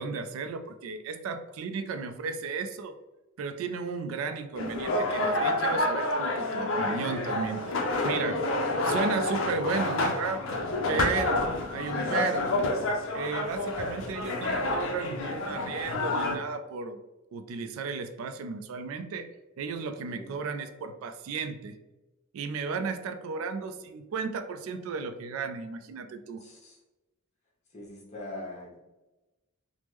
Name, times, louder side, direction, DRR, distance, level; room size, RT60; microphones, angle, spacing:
voice 1, 0.0-2.9 3.4-7.8 8.0-8.4 8.8-10.4 10.9-12.6 13.1-17.0 17.3-19.3 19.6-21.8 22.3-26.4, right 5 dB, 75° right, 10 dB, 0.3 m, -34 dB
sound 1, 4.6-16.4, left 2 dB, 65° left, 0.5 m, -29 dB
voice 2, 26.4-26.8 27.7-28.8, left 1 dB, 35° left, -4 dB, 0.9 m, -42 dB
3.3 x 2.0 x 3.0 m, 1.0 s
head